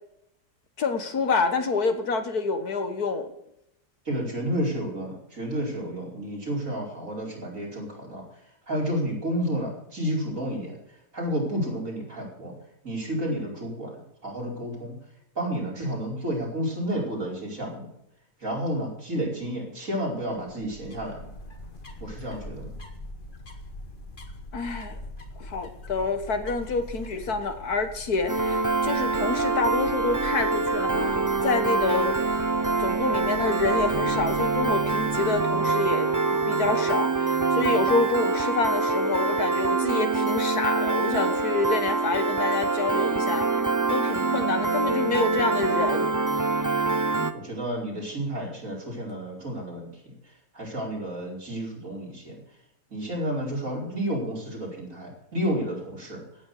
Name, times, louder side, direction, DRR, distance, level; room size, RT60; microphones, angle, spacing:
voice 1, 0.8-3.3 24.5-25.0 25.4-32.5 32.8-43.5 43.9-46.1, left 4 dB, 65° left, 8 dB, 2.0 m, -28 dB
voice 2, 4.1-8.2 8.7-10.8 11.1-12.5 12.8-15.0 15.4-17.9 18.4-21.3 22.0-22.7 47.3-50.0 50.5-52.4 52.9-56.2, equal, 50° right, -2 dB, 5.4 m, -31 dB
fotja aguait del sabogal, 20.4-35.6, left 1 dB, 30° left, 1.9 m, -43 dB
Piano, 28.3-47.3, right 3 dB, 25° right, 0.4 m, -25 dB
16.0 x 9.3 x 6.7 m, 0.79 s
omnidirectional pair, 1.8 m